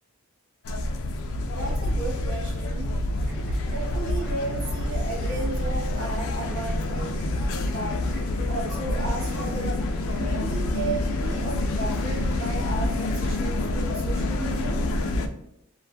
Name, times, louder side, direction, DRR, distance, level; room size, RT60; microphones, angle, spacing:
sound 1, 0.6-15.3, left 1 dB, 75° left, 0.3 m, -27 dB
voice 1, 1.4-2.9 3.7-7.2 7.7-8.0 8.5-9.8 10.2-14.8, right 3 dB, 70° right, -2 dB, 0.6 m, -34 dB
sound 2, 3.2-13.5, left 1 dB, ahead, 0.7 m, -46 dB
2.0 x 2.0 x 3.4 m, 0.79 s
head